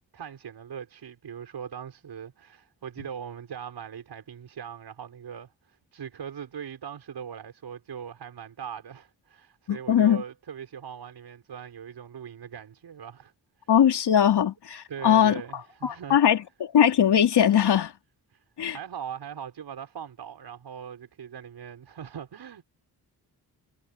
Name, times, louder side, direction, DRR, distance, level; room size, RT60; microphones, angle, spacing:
voice 1, 0.1-13.3 13.6-13.7 14.9-16.2 18.3-18.4 18.7-22.6, right 8 dB, 80° right, 6.1 m, -40 dB
voice 2, 9.7-10.2 13.7-17.9 18.6-18.8, left 9 dB, 80° left, 3.7 m, -21 dB
cardioid pair, 65°, 39 cm